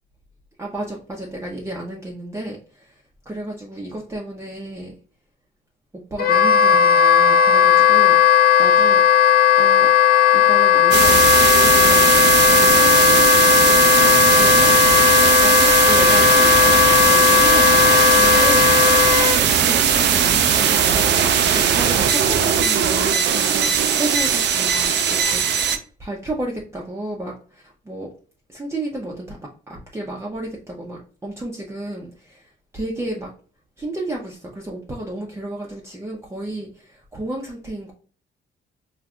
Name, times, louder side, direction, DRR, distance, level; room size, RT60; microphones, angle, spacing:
voice 1, 0.6-4.9 6.1-8.2 8.6-9.0 9.6-9.9 10.3-14.7 15.2-25.4 26.0-28.1 28.5-29.4 29.7-33.3 33.8-37.9, right 1 dB, 15° right, -2 dB, 0.6 m, -32 dB
Wind instrument woodwind instrument, 6.2-19.4, left 9 dB, 50° left, 0.4 m, -15 dB
sound 1, 10.9-25.8, right 8 dB, 60° right, 0.5 m, -18 dB
3.6 x 2.6 x 2.2 m, 0.41 s
cardioid pair, 90°, 20 cm